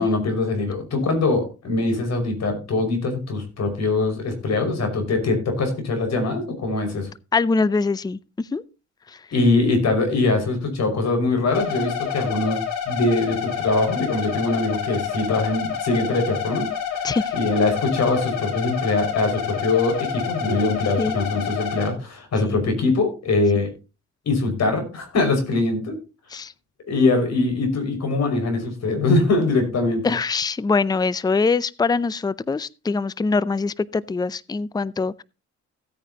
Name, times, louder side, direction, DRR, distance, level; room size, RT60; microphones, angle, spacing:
voice 1, 0.0-7.1 9.3-12.6 12.9-16.7 17.3-23.7 24.3-26.0 26.9-30.1, left 3 dB, 60° left, 5.5 m, -22 dB
voice 2, 7.3-8.6 9.1-9.2 17.0-17.3 21.0-21.1 22.4-22.5 26.3-26.5 30.0-35.2, left 4 dB, 15° left, 0.5 m, -23 dB
sound 1, 11.5-21.9, left 8 dB, 85° left, 3.2 m, -28 dB
16.0 x 9.2 x 2.8 m
cardioid pair, 90°, 30 cm